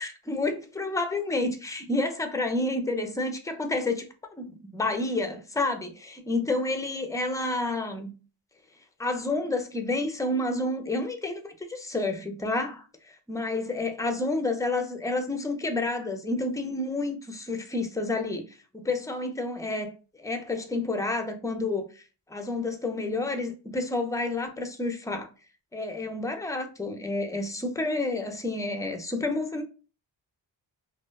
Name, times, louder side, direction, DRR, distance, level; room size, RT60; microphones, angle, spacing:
voice 1, 0.0-4.1 4.4-8.1 9.0-19.9 20.2-22.0 22.3-25.3 25.7-29.6, left 2 dB, 10° left, 0.3 m, -30 dB
2.6 x 2.1 x 2.2 m
cardioid pair, 75°, 46 cm